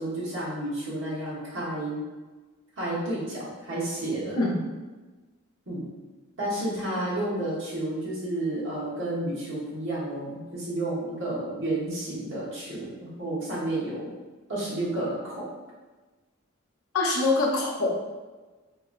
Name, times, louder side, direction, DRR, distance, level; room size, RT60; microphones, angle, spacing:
voice 1, 0.0-2.0 2.8-4.4 5.7-5.9 6.4-14.1 14.5-15.4, right 1 dB, 60° right, -7 dB, 1.2 m, -31 dB
voice 2, 16.9-18.0, left 2 dB, 90° left, -2 dB, 0.7 m, -24 dB
3.8 x 2.7 x 2.4 m, 1.3 s
head